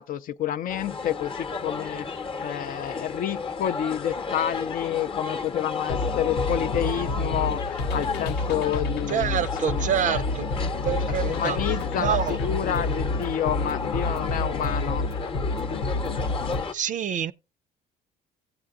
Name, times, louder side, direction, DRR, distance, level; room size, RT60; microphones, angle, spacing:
voice 1, 0.0-10.2 11.1-15.1, left 10 dB, 55° left, 0.4 m, -29 dB
sound 1, 0.7-16.7, left 4 dB, 30° left, 0.8 m, -33 dB
sound 2, 5.9-16.6, left 2 dB, 85° left, 0.8 m, -29 dB
voice 2, 9.1-10.5 10.8-11.6 12.0-12.4 16.7-17.3, right 9 dB, 50° right, 0.4 m, -26 dB
16.5 x 7.8 x 2.3 m
cardioid pair, 110°, 17 cm